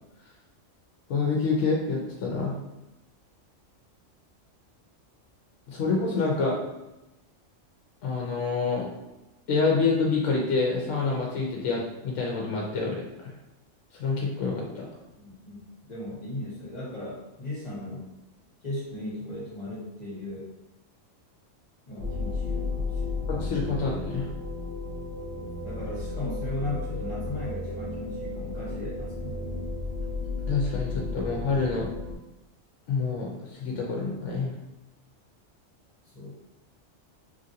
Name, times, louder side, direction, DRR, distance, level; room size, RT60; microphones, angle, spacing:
voice 1, 1.1-2.6 5.7-6.6 8.0-8.9 9.5-13.3 14.0-14.9 23.3-24.3 30.5-31.9 32.9-34.5, left 4 dB, 75° left, -2 dB, 0.9 m, -27 dB
voice 2, 15.2-18.1 18.6-20.5 21.9-23.3 25.3-29.7 36.1-36.4, left 1 dB, 35° left, -7 dB, 1.2 m, -37 dB
sound 1, 22.0-32.1, left 3 dB, 70° right, 1.2 m, -33 dB
3.1 x 2.5 x 2.7 m, 0.97 s
omnidirectional pair, 1.3 m